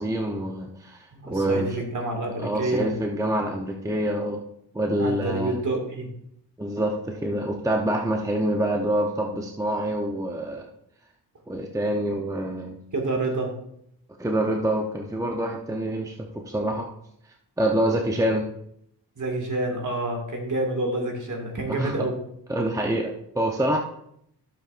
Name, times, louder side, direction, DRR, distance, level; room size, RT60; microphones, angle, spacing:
voice 1, 0.0-1.8 2.4-4.4 4.7-5.6 6.6-10.7 11.5-12.8 14.2-16.1 16.5-16.9 17.6-18.4 21.7-22.1 22.5-23.8, right 1 dB, 10° right, 1 dB, 0.8 m, -26 dB
voice 2, 1.1-2.9 5.0-6.1 12.9-13.5 19.2-22.2, right 2 dB, 45° right, 2 dB, 2.1 m, -28 dB
12.0 x 7.2 x 2.5 m, 0.74 s
cardioid pair, 85°, 44 cm